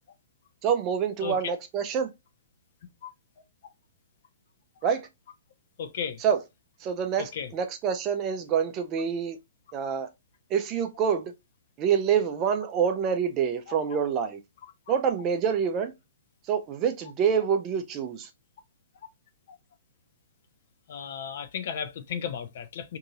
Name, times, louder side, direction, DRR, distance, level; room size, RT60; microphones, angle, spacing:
voice 1, 0.6-2.1 4.8-5.1 6.2-6.4 6.8-9.4 9.7-10.1 10.5-11.3 11.8-14.4 14.9-15.9 16.5-18.3, right 7 dB, 25° right, 0.5 m, -26 dB
voice 2, 1.2-1.6 5.8-6.2 7.3-7.5 13.7-13.8 20.9-23.0, left 7 dB, 45° left, 0.5 m, -34 dB
2.7 x 2.7 x 3.8 m
figure-of-eight pair, 115°, 0 cm